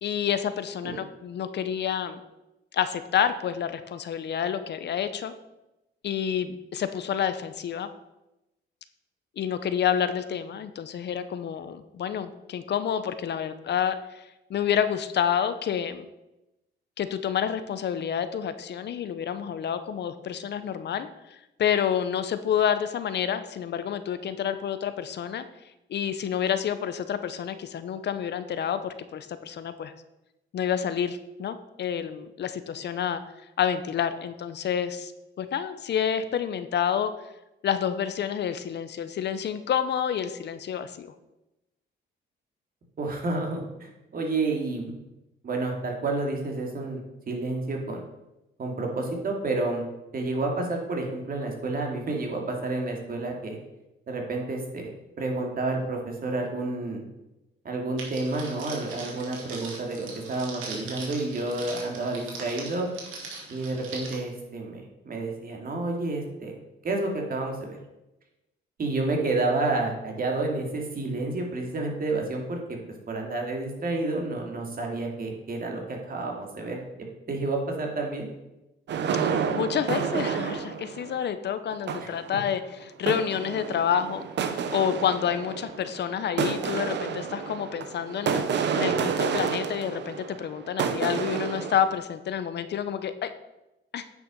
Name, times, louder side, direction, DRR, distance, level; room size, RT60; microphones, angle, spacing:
voice 1, 0.0-2.2 2.7-5.3 6.0-7.9 9.4-16.1 17.0-25.4 25.9-29.9 30.5-33.2 33.6-35.1 35.4-37.1 37.6-41.1 79.1-93.3 93.9-94.0, left 8 dB, 60° left, 11 dB, 0.8 m, -29 dB
voice 2, 43.0-44.9 45.4-47.0 47.3-48.0 48.6-49.8 50.1-53.6 54.1-54.9 55.2-57.0 57.6-62.9 63.5-66.6 66.8-67.8 68.8-72.6 73.1-76.8 77.3-78.3 82.0-82.1, right 2 dB, 45° right, 1 dB, 2.5 m, -30 dB
Crackle, 58.0-64.1, right 4 dB, 85° right, 2.6 m, -40 dB
sound 1, 78.9-81.2 81.7-82.5 83.1-91.9, right 6 dB, 65° right, 0.9 m, -30 dB
9.2 x 6.1 x 5.3 m, 0.95 s
cardioid pair, 90°, 20 cm